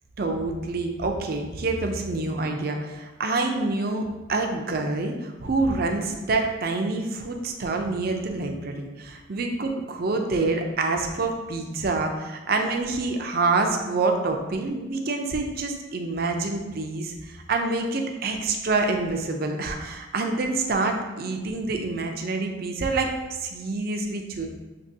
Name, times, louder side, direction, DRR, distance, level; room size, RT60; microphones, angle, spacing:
voice 1, 0.2-23.1 23.4-24.5, right 3 dB, 50° right, 3 dB, 0.5 m, -27 dB
6.5 x 2.9 x 2.7 m, 1.2 s
head